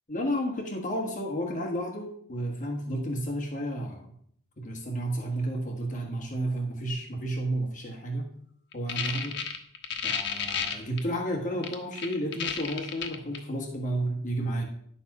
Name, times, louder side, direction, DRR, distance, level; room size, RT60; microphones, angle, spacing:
voice 1, 0.1-4.1 4.6-8.3 8.7-9.4 10.0-14.7, right 1 dB, 35° left, 0 dB, 1.3 m, -32 dB
sound 1, 8.7-11.0 11.6-13.4, left 7 dB, 55° left, 1.2 m, -31 dB
10.5 x 7.1 x 4.8 m, 0.64 s
head